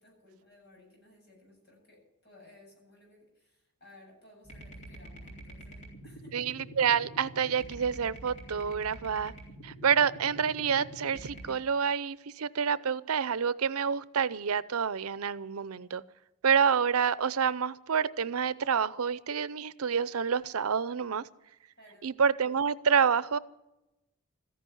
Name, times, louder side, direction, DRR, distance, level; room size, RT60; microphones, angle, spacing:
voice 1, 0.0-6.4 21.8-22.1, left 1 dB, 50° left, 0 dB, 7.4 m, -58 dB
sound 1, 4.4-11.5, right 1 dB, 30° left, 3.8 m, -46 dB
voice 2, 6.3-9.3 9.6-16.0 16.4-21.3 22.0-23.4, right 7 dB, 90° right, 17 dB, 0.6 m, -28 dB
14.5 x 10.0 x 9.2 m, 0.91 s
head